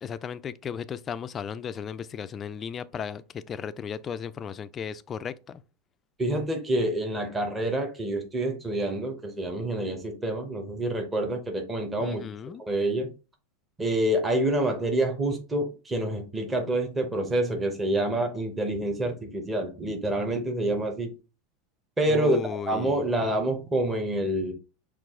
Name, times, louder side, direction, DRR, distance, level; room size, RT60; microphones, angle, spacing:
voice 1, 0.0-5.6 12.0-12.6 22.1-23.1, left 7 dB, 25° left, 0.3 m, -35 dB
voice 2, 6.2-12.2 12.7-13.1 13.8-21.1 22.0-24.5, right 1 dB, 15° right, 0.9 m, -27 dB
6.0 x 2.4 x 3.6 m
supercardioid pair, 145°, 0 cm